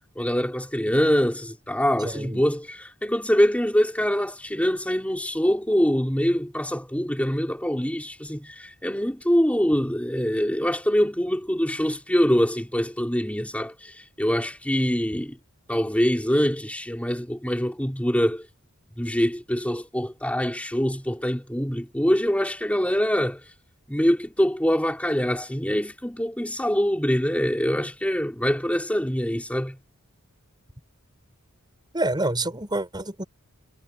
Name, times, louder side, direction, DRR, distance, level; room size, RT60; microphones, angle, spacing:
voice 1, 0.2-15.4 15.7-18.5 19.0-23.4 23.9-29.8, equal, 5° left, 4.5 m, -24 dB
voice 2, 2.0-2.4 31.9-33.2, right 2 dB, 20° right, 7.8 m, -27 dB
head